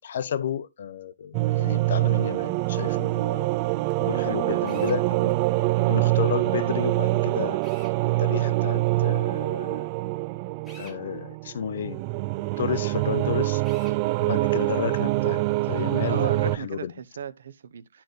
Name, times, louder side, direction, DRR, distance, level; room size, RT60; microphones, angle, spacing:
voice 1, 0.0-3.5 4.0-5.4 5.9-7.6 8.2-9.9 10.8-12.0 12.6-13.6 14.2-15.4 15.7-16.9, left 8 dB, 60° left, 0.8 m, -31 dB
sound 1, 1.3-16.6, right 20 dB, 30° right, 0.3 m, -25 dB
voice 2, 4.1-4.9 16.1-18.0, right 7 dB, 70° right, 0.9 m, -37 dB
Drill, 4.7-5.0 7.6-8.0 10.6-11.0 13.6-14.0, left 1 dB, 10° left, 2.3 m, -48 dB
11.0 x 4.4 x 3.2 m
hypercardioid pair, 160°, 0 cm